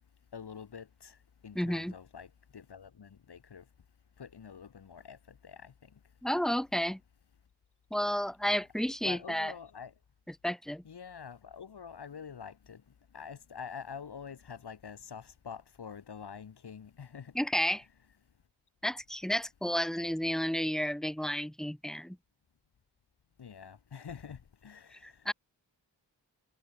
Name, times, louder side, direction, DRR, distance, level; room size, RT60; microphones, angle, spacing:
voice 1, 0.3-1.2 1.4-3.6 4.2-6.0 8.5-8.6 9.0-9.9 10.8-12.8 13.1-17.3 23.4-25.3, left 7 dB, 65° left, 1.2 m, -46 dB
voice 2, 1.5-1.9 6.2-7.0 7.9-9.5 10.4-10.8 17.3-17.8 18.8-22.2 25.0-25.3, equal, ahead, 0.4 m, -31 dB
wide cardioid pair, 60°, 43 cm